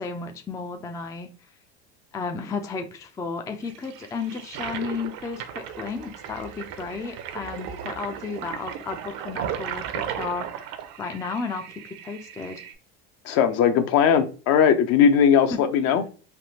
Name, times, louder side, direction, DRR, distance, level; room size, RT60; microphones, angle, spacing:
voice 1, 0.0-1.3 2.1-12.6, left 4 dB, 10° left, 6 dB, 0.3 m, -33 dB
Toilet flush, 3.6-12.7, right 9 dB, 65° right, 0.6 m, -36 dB
voice 2, 13.2-16.0, left 7 dB, 55° left, 9 dB, 0.6 m, -19 dB
3.5 x 2.4 x 2.7 m, 0.35 s
supercardioid pair, 105°, 30 cm